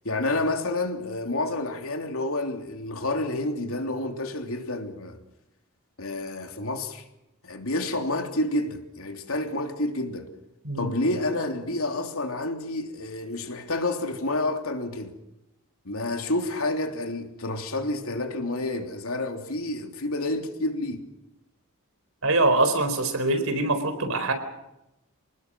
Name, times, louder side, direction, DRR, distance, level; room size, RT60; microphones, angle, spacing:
voice 1, 0.0-5.2 6.0-7.0 7.4-10.3 10.8-15.2 15.8-21.1, left 2 dB, 70° left, 3.3 m, -29 dB
voice 2, 22.2-24.3, right 2 dB, 65° right, 4.2 m, -23 dB
27.0 x 20.0 x 6.3 m
head